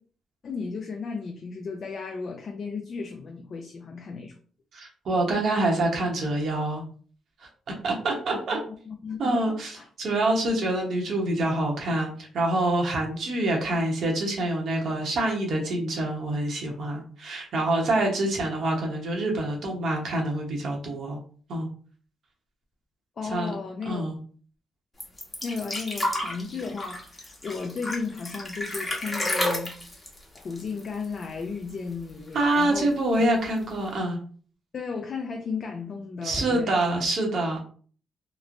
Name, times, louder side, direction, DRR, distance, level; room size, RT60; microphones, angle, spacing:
voice 1, 0.4-4.4 8.3-8.6 8.9-9.9 23.2-24.1 25.4-29.8 30.3-33.3 34.7-36.7, left 5 dB, 50° left, 0.3 m, -34 dB
voice 2, 4.7-6.8 7.4-7.5 7.8-8.6 9.2-21.2 21.5-21.7 23.3-23.5 23.9-24.2 32.3-34.2 36.2-37.6, right 2 dB, 60° right, 0.8 m, -26 dB
sound 1, 25.0-31.4 31.7-31.8 32.1-32.8 33.6-33.7, left 1 dB, 20° left, 0.9 m, -31 dB
3.0 x 2.0 x 2.5 m
cardioid pair, 90°, 0 cm